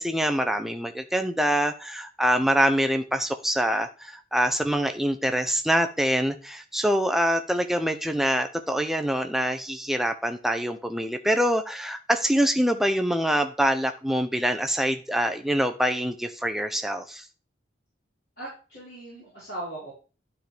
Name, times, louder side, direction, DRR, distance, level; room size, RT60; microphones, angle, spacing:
voice 1, 0.0-17.2, equal, ahead, 6 dB, 0.6 m, -25 dB
voice 2, 18.4-19.9, right 1 dB, 55° left, -10 dB, 4.7 m, -38 dB
12.0 x 4.5 x 3.4 m, 0.35 s
head